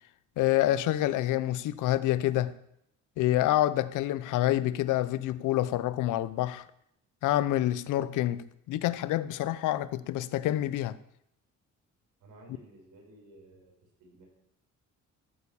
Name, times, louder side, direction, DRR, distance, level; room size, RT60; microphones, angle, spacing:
voice 1, 0.4-2.5 3.2-6.7 7.2-11.0, left 14 dB, 90° left, 0.7 m, -27 dB
voice 2, 12.2-14.3, right 1 dB, 90° right, 6.1 m, -55 dB
14.0 x 7.3 x 6.9 m
cardioid pair, 90°, 30 cm